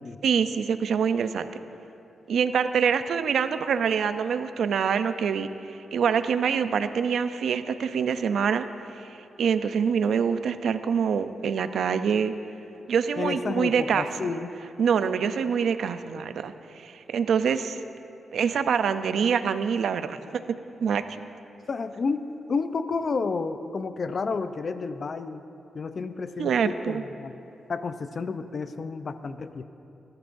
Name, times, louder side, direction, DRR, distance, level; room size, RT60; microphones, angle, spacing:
voice 1, 0.2-1.5 2.3-8.7 9.0-9.1 9.4-12.3 12.9-14.1 14.8-17.8 18.3-21.3 26.4-27.0, right 7 dB, 75° right, 10 dB, 0.5 m, -25 dB
voice 2, 13.2-14.5 21.7-22.2 22.5-25.4 25.7-27.3 27.7-29.6, left 4 dB, 50° left, 10 dB, 0.6 m, -31 dB
20.0 x 13.0 x 2.6 m, 2.8 s
cardioid pair, 70°, 0 cm